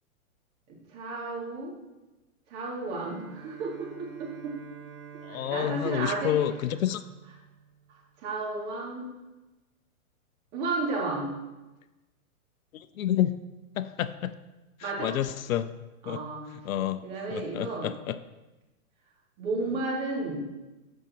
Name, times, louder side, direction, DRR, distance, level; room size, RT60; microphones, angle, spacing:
voice 1, 0.7-1.7 2.5-4.6 5.3-6.4 7.9-9.1 10.5-11.3 14.8-15.1 16.0-16.4 17.0-17.9 19.4-20.4, right 3 dB, 35° right, -2 dB, 3.0 m, -33 dB
Bowed string instrument, 2.8-8.3, right 7 dB, 75° right, 2.6 m, -48 dB
voice 2, 5.2-7.0 12.7-13.4 13.7-14.3 14.8-15.7 16.1-16.2 16.6-18.2, left 11 dB, 70° left, 13 dB, 0.7 m, -29 dB
13.5 x 5.3 x 4.5 m, 1.1 s
hypercardioid pair, 140°, 43 cm